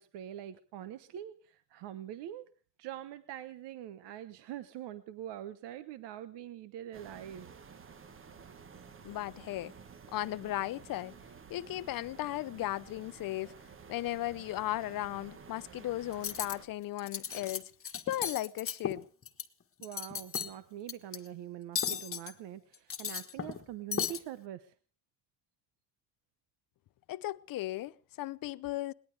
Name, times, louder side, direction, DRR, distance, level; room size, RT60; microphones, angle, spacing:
voice 1, 0.0-2.4 2.8-7.5 19.8-24.7, right 11 dB, 70° right, 1.1 m, -44 dB
sound 1, 6.9-16.7, right 6 dB, 30° right, 1.3 m, -52 dB
voice 2, 9.0-9.7 10.1-11.1 11.5-13.5 13.9-17.7 18.1-19.0 27.1-28.9, left 15 dB, 50° left, 0.7 m, -36 dB
Cutlery silverware, 16.1-16.5 17.0-17.6 17.8-19.4 19.8-20.5 20.9-21.2 21.8-22.3 22.7-23.6 23.9-24.2, left 7 dB, 30° left, 1.5 m, -35 dB
21.5 x 19.5 x 3.4 m
cardioid pair, 125°, 43 cm